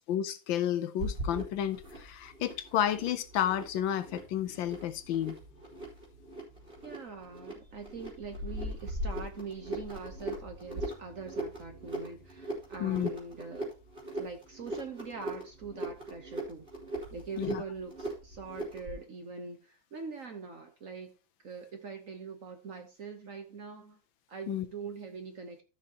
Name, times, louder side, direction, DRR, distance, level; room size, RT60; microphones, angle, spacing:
voice 1, 0.1-5.4 12.8-13.1 17.4-17.6 24.5-24.7, left 10 dB, 70° left, 1.3 m, -31 dB
sound 1, 1.0-19.0, right 1 dB, 25° right, 3.4 m, -40 dB
voice 2, 6.8-13.7 14.1-16.7 17.1-21.2 21.4-24.0 24.3-25.6, right 4 dB, 50° right, 1.1 m, -43 dB
14.5 x 5.6 x 2.9 m
omnidirectional pair, 2.3 m